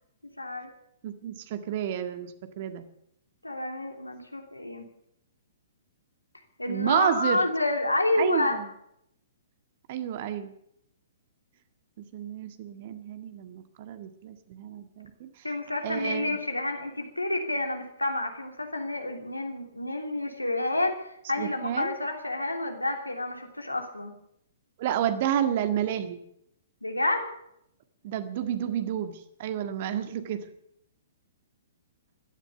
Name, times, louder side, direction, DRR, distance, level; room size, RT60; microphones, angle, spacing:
voice 1, 0.4-0.7 3.4-4.8 6.6-8.6 15.4-24.2 26.8-27.3, left 2 dB, 85° left, 4 dB, 3.0 m, -29 dB
voice 2, 1.0-2.8 6.7-7.4 8.2-8.7 9.9-10.5 12.0-15.3 15.8-16.4 21.4-21.9 24.8-26.2 28.0-30.4, right 10 dB, 45° right, 9 dB, 1.8 m, -30 dB
16.0 x 12.5 x 6.9 m, 0.74 s
figure-of-eight pair, 115°, 0 cm